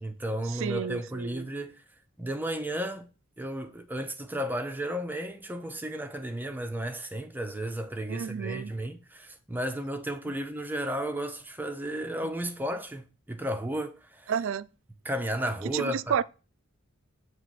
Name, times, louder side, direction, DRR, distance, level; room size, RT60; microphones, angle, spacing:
voice 1, 0.0-1.8 2.2-3.1 3.4-14.3 15.0-16.2, right 1 dB, 10° right, 0.5 m, -33 dB
voice 2, 0.6-1.4 8.1-8.7 14.3-14.7 15.7-16.2, right 8 dB, 65° right, 0.3 m, -30 dB
7.7 x 3.0 x 5.7 m
head